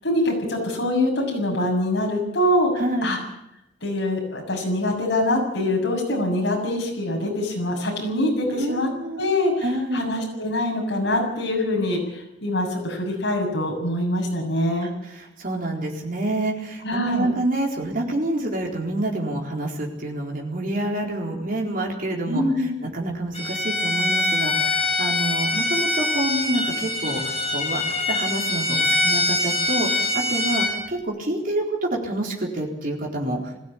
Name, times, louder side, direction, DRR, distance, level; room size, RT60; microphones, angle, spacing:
voice 1, 0.0-2.7 3.0-3.2 3.8-8.9 9.2-9.6 9.9-14.9 16.8-17.3 22.3-22.7, left 1 dB, 60° left, 1 dB, 7.1 m, -24 dB
voice 2, 2.8-3.1 8.6-9.3 9.6-10.0 14.8-22.4 22.9-27.8 28.1-33.4, right 1 dB, 45° right, -1 dB, 4.2 m, -27 dB
Bowed string instrument, 23.3-30.7, left 2 dB, 35° left, 6.4 m, -24 dB
21.0 x 16.0 x 8.7 m, 0.84 s
head